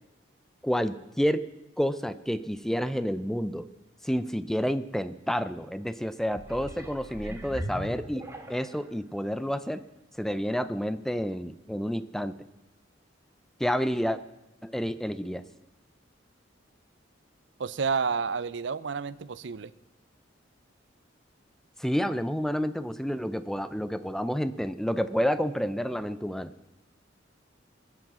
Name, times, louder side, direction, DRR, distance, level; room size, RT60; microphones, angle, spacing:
voice 1, 0.6-1.5 1.8-3.7 4.0-8.2 8.5-9.8 10.2-12.3 13.6-14.2 14.6-15.4 21.8-26.5, equal, ahead, 13 dB, 0.4 m, -29 dB
sound 1, 6.3-8.9 9.5-9.6, equal, 15° right, 1.6 m, -39 dB
voice 2, 17.6-19.7, right 5 dB, 65° right, 17 dB, 0.5 m, -30 dB
21.5 x 7.8 x 7.4 m, 0.96 s
head